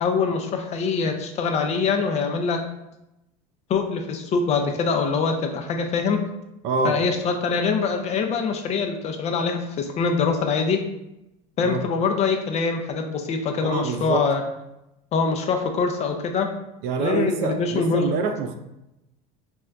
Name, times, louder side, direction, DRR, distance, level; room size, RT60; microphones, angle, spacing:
voice 1, 0.0-2.6 3.7-6.2 6.8-10.8 11.6-14.4 15.1-16.5 17.0-18.1, left 5 dB, 35° left, 5 dB, 0.5 m, -24 dB
voice 2, 6.6-7.0 11.6-11.9 13.6-14.2 16.8-18.5, right 4 dB, 60° right, 6 dB, 0.4 m, -25 dB
4.4 x 2.1 x 2.4 m, 0.89 s
supercardioid pair, 105°, 19 cm